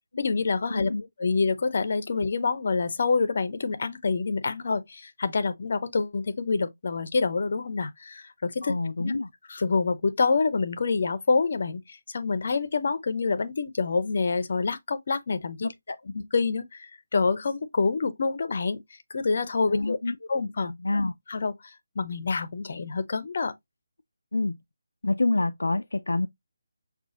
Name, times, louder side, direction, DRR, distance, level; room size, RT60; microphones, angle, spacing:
voice 1, 0.2-0.9 1.2-9.1 9.5-15.7 16.3-18.8 19.1-20.0 20.3-20.7 21.3-23.5, left 4 dB, 50° left, 0.7 m, -27 dB
voice 2, 0.7-1.1 8.6-9.3 15.6-16.0 19.7-20.2 20.6-21.1 24.3-24.6 25.0-26.3, left 2 dB, 80° left, 0.3 m, -27 dB
6.0 x 2.4 x 2.6 m
figure-of-eight pair, 160°, 0 cm